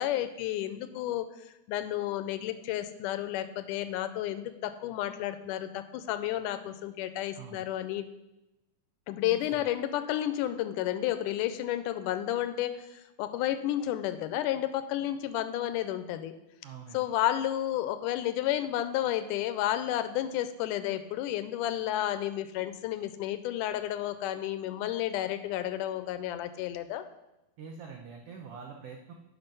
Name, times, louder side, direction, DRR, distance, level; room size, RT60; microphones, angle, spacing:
voice 1, 0.0-8.1 9.1-16.3 16.9-27.0, left 12 dB, 85° left, 11 dB, 2.1 m, -31 dB
voice 2, 7.3-7.7 9.2-9.6 16.6-17.1 27.6-29.1, right 6 dB, 85° right, 2 dB, 1.3 m, -45 dB
9.0 x 6.0 x 5.3 m, 0.94 s
omnidirectional pair, 3.7 m